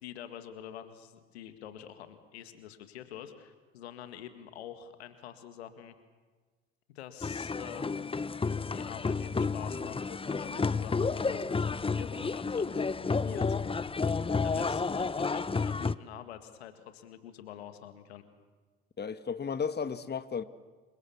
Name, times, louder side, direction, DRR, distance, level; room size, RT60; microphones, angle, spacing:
voice 1, 0.0-5.9 7.0-8.1 8.7-13.8 14.4-18.2, left 10 dB, 85° left, 2.1 m, -46 dB
sound 1, 7.2-15.9, left 4 dB, 15° left, 0.8 m, -31 dB
voice 2, 19.0-20.4, left 6 dB, 30° left, 1.5 m, -34 dB
28.5 x 24.0 x 7.1 m
hypercardioid pair, 55°, 31 cm